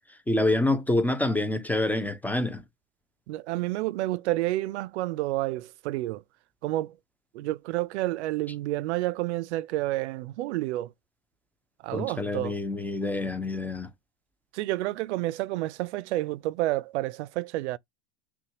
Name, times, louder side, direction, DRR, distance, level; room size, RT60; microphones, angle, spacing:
voice 1, 0.3-2.6 11.9-13.9, left 2 dB, 5° left, 0.4 m, -27 dB
voice 2, 3.3-6.2 6.6-7.0 7.3-10.9 11.8-12.6 14.5-17.8, right 17 dB, 80° right, 0.5 m, -30 dB
5.7 x 2.2 x 2.9 m
supercardioid pair, 125°, 34 cm